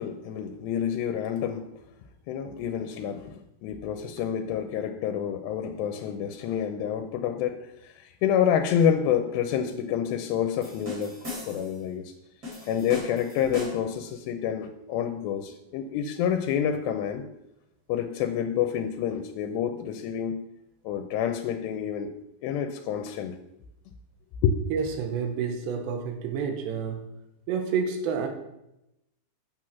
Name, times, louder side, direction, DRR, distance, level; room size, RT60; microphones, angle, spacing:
voice 1, 0.0-1.7 2.3-7.6 7.8-11.1 11.5-12.1 12.7-17.2 17.9-20.5 20.8-22.1 22.4-23.4 24.4-24.6, left 8 dB, 85° left, 6 dB, 2.9 m, -28 dB
sound 1, 10.6-11.8 12.4-14.0, left 3 dB, 20° right, 4.5 m, -38 dB
voice 2, 24.7-27.1 27.5-28.3, right 6 dB, 85° right, 4 dB, 3.4 m, -29 dB
9.1 x 7.7 x 6.0 m, 0.86 s
omnidirectional pair, 4.8 m